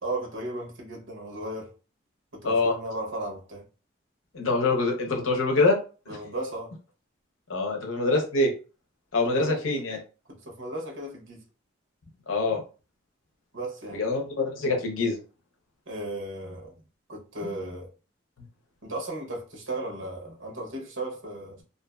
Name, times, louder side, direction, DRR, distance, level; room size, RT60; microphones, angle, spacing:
voice 1, 0.0-1.8 2.3-3.6 6.1-6.7 9.2-9.6 10.3-11.4 13.5-14.0 15.9-16.8 17.1-17.9 18.8-21.6, right 2 dB, 75° right, 0.9 m, -35 dB
voice 2, 4.3-5.8 7.5-8.5 9.1-10.0 12.3-12.6 13.9-15.2 17.4-17.5, left 3 dB, 85° left, 0.7 m, -24 dB
2.5 x 2.5 x 2.3 m
head